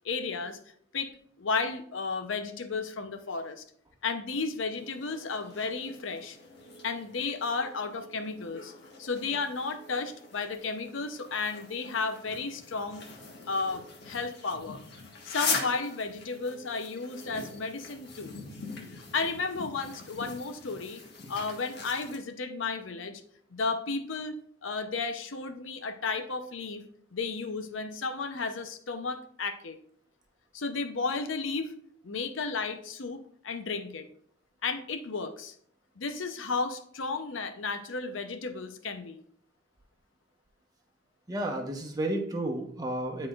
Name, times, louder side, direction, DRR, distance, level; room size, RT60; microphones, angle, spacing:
voice 1, 0.0-0.6 0.9-3.6 4.0-6.4 6.8-8.7 9.0-13.0 13.5-14.8 15.2-18.3 18.9-21.0 21.3-23.2 23.5-24.3 24.6-26.8 27.1-29.8 30.5-31.7 32.0-34.1 34.6-35.5 36.0-39.2, left 4 dB, 90° left, 8 dB, 0.7 m, -33 dB
sound 1, 4.7-22.2, left 4 dB, 60° left, 1.3 m, -41 dB
voice 2, 41.3-43.3, right 1 dB, 20° right, 1 dB, 1.0 m, -32 dB
9.7 x 4.2 x 2.4 m, 0.63 s
head